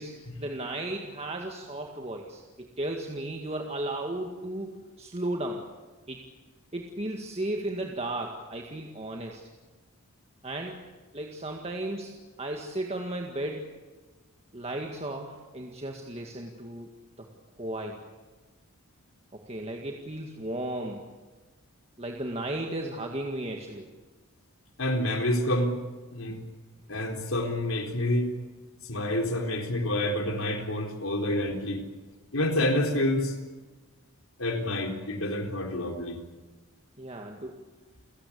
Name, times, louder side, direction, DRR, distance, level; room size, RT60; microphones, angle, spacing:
voice 1, 0.4-5.6 6.1-6.2 6.7-9.4 10.4-10.8 11.1-13.7 14.5-16.9 17.2-17.3 17.6-18.0 19.3-21.0 22.0-23.9 37.0-37.6, right 1 dB, 25° right, 2 dB, 1.9 m, -35 dB
voice 2, 24.8-25.8 26.1-26.4 26.9-28.3 28.8-31.8 32.3-33.3 34.4-36.2, left 1 dB, 70° left, 4 dB, 3.9 m, -28 dB
29.0 x 17.5 x 8.6 m, 1.3 s
head